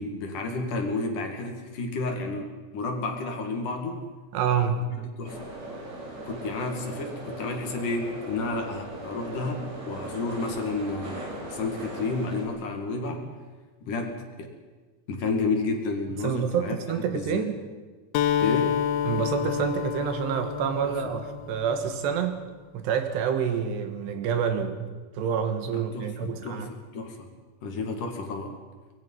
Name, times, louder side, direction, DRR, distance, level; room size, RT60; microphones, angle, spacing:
voice 1, 0.0-4.0 4.8-5.5 6.2-13.3 13.8-14.5 15.1-16.7 17.1-17.4 18.4-18.8 20.8-21.0 25.7-27.3 27.6-28.6, left 3 dB, 55° left, 3 dB, 3.3 m, -31 dB
voice 2, 4.3-4.9 16.2-17.5 19.1-22.4 22.7-26.7, right 7 dB, 75° right, 7 dB, 3.4 m, -28 dB
sound 1, 5.3-12.5, right 1 dB, 40° right, 5.7 m, -38 dB
Acoustic guitar, 18.1-22.0, left 9 dB, 75° left, 2.4 m, -28 dB
25.0 x 21.0 x 5.7 m, 1.3 s
omnidirectional pair, 5.1 m